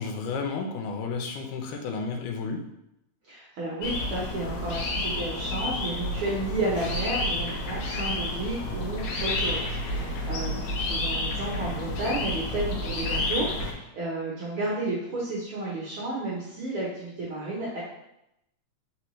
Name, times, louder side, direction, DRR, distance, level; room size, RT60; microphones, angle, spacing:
voice 1, 0.0-2.6, left 4 dB, 90° left, 3 dB, 2.2 m, -32 dB
voice 2, 3.3-17.8, right 2 dB, 75° right, -7 dB, 1.3 m, -32 dB
sound 1, 3.8-13.7, left 1 dB, 75° left, 1.7 m, -30 dB
4.5 x 3.8 x 3.0 m, 0.84 s
omnidirectional pair, 3.6 m